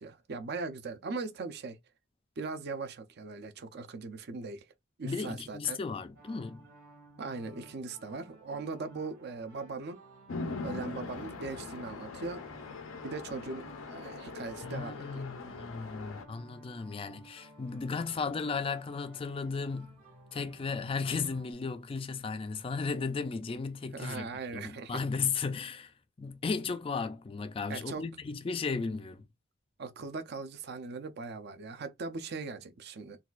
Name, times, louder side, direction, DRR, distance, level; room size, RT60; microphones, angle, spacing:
voice 1, 0.0-1.8 2.4-4.7 5.0-5.8 7.2-10.0 10.6-12.5 13.0-15.2 23.9-25.0 27.7-28.0 29.8-33.2, right 4 dB, 55° right, 0.5 m, -39 dB
voice 2, 5.0-6.6 14.6-20.0 20.3-24.3 24.5-25.9 26.2-29.2, left 5 dB, 25° left, 0.3 m, -35 dB
sound 1, 6.1-21.5, right 1 dB, 75° right, 1.7 m, -56 dB
Chatter / Traffic noise roadway noise / Train, 10.3-16.2, left 3 dB, 75° left, 0.6 m, -41 dB
4.0 x 2.3 x 2.4 m
head